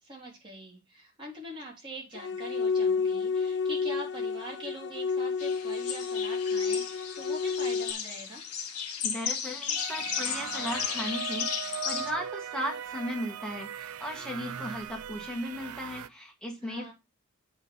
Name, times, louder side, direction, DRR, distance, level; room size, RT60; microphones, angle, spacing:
voice 1, 0.0-8.4 16.6-16.9, right 1 dB, 20° right, -2 dB, 3.2 m, -43 dB
sound 1, 2.1-7.9, left 5 dB, 55° left, 0.5 m, -30 dB
sound 2, 5.4-12.1, left 7 dB, 90° left, 1.3 m, -35 dB
voice 2, 9.0-11.5 11.8-16.9, equal, 5° left, 0 dB, 1.9 m, -36 dB
sound 3, 9.7-16.1, right 8 dB, 80° right, 0.5 m, -39 dB
8.3 x 4.0 x 5.2 m, 0.24 s
head